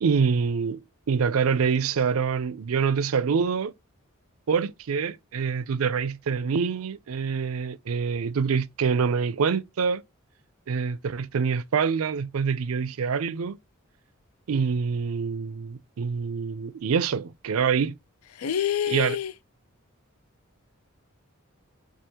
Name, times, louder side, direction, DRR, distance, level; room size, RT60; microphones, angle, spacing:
voice 1, 0.0-3.7 4.5-10.0 10.7-13.6 14.5-17.9 18.9-19.2, right 6 dB, 85° right, 0.4 m, -26 dB
voice 2, 18.4-19.3, left 9 dB, 90° left, 0.4 m, -26 dB
4.8 x 2.4 x 2.8 m
head